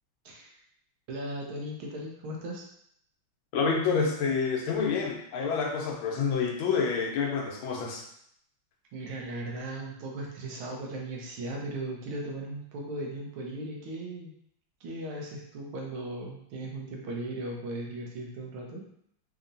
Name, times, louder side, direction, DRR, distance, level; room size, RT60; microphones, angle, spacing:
voice 1, 0.2-0.6 1.1-2.6 8.9-14.3 14.8-18.8, right 1 dB, 90° right, -1 dB, 1.7 m, -37 dB
voice 2, 3.5-8.0, left 5 dB, 85° left, 0 dB, 1.5 m, -28 dB
4.3 x 2.9 x 2.6 m, 0.70 s
omnidirectional pair, 2.2 m